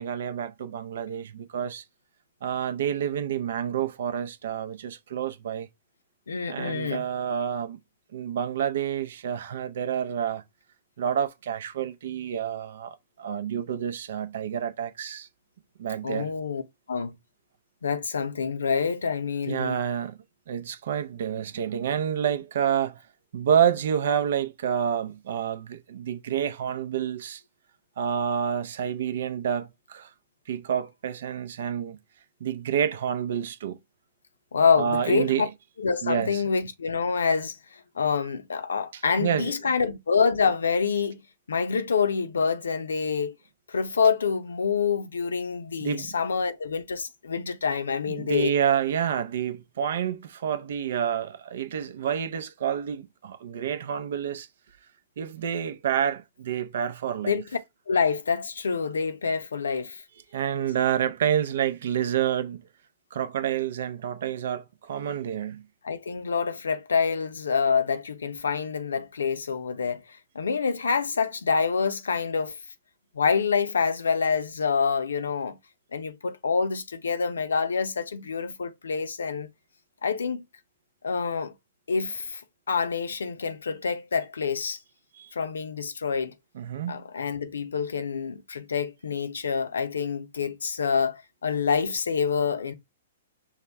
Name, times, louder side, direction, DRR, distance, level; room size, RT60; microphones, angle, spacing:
voice 1, 0.0-1.8 2.4-5.7 6.5-7.8 8.1-10.4 11.0-15.3 15.8-16.3 19.5-20.2 20.5-23.0 23.3-27.4 28.0-30.1 30.5-32.0 32.4-33.8 34.8-35.5 36.0-36.4 38.9-39.5 45.8-46.1 48.1-54.5 55.2-57.4 60.3-62.6 63.1-65.6 85.1-85.3 86.5-87.0, right 8 dB, 65° right, 0.5 m, -28 dB
voice 2, 6.3-7.1 16.0-16.6 16.9-17.1 17.8-19.8 34.5-35.5 35.8-37.6 38.0-41.2 41.5-43.3 43.7-48.5 57.2-57.4 57.9-60.0 65.8-70.0 70.3-72.6 73.1-75.6 75.9-79.5 80.0-80.4 81.0-81.5 81.9-82.4 82.7-84.8 85.3-86.3 86.9-92.7, left 5 dB, 90° left, 0.6 m, -26 dB
5.6 x 2.1 x 3.4 m
hypercardioid pair, 135°, 0 cm